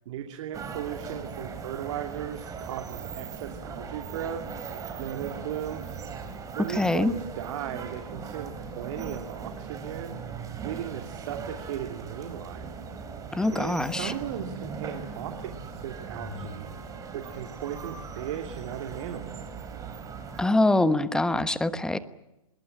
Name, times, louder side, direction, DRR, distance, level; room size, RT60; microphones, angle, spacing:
voice 1, 0.1-4.5 5.0-6.0 6.5-10.2 10.6-12.7 13.5-16.7 17.1-19.5, right 10 dB, 50° right, 5 dB, 2.7 m, -37 dB
sound 1, 0.5-20.5, right 5 dB, 20° right, 3.9 m, -39 dB
voice 2, 6.8-7.1 13.3-14.1 20.4-22.0, left 2 dB, 5° left, 13 dB, 1.1 m, -24 dB
24.0 x 21.5 x 8.7 m, 0.93 s
hypercardioid pair, 130°, 19 cm